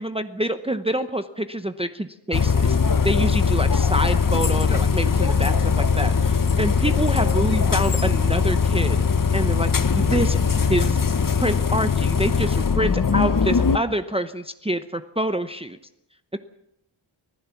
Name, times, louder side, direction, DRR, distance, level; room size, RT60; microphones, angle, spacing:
voice 1, 0.0-2.8 3.0-9.0 9.3-10.4 10.7-11.0 11.4-15.8 16.3-16.4, right 1 dB, 10° right, 9 dB, 0.8 m, -26 dB
sound 1, 2.3-13.8, left 5 dB, 45° left, 0.9 m, -20 dB
24.5 x 16.0 x 7.1 m, 0.86 s
wide cardioid pair, 95°, 46 cm